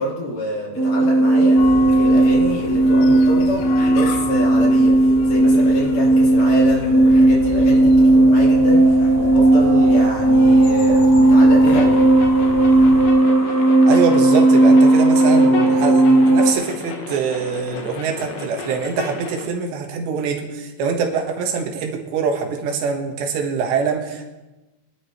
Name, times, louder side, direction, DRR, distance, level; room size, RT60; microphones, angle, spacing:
voice 1, 0.0-12.0, equal, 50° left, -5 dB, 5.1 m, -27 dB
sound 1, 0.7-16.5, right 2 dB, 10° left, 0.8 m, -14 dB
sound 2, 1.6-13.1, left 5 dB, 85° left, 3.6 m, -32 dB
sound 3, 11.7-19.5, left 5 dB, 65° left, 3.0 m, -33 dB
voice 2, 13.9-24.3, right 6 dB, 85° right, 3 dB, 3.7 m, -24 dB
24.0 x 11.0 x 3.2 m, 1.1 s
omnidirectional pair, 5.0 m